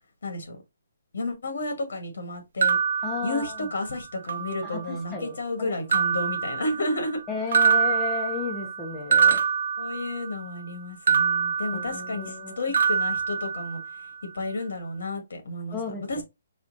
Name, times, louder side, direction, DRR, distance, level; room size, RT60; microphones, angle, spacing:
voice 1, 0.2-0.6 1.1-2.8 3.2-7.2 9.8-13.8 14.3-15.8 16.1-16.2, left 2 dB, 80° left, 2.0 m, -31 dB
sound 1, 2.6-3.9 4.3-5.1 5.9-7.2 7.5-10.5 11.1-12.4 12.7-14.1, right 7 dB, 60° right, 0.3 m, -25 dB
voice 2, 3.0-3.7 4.6-5.7 7.3-9.4 11.7-12.6 15.7-16.2, left 5 dB, 10° left, 0.6 m, -34 dB
4.3 x 2.3 x 4.1 m
hypercardioid pair, 175°, 0 cm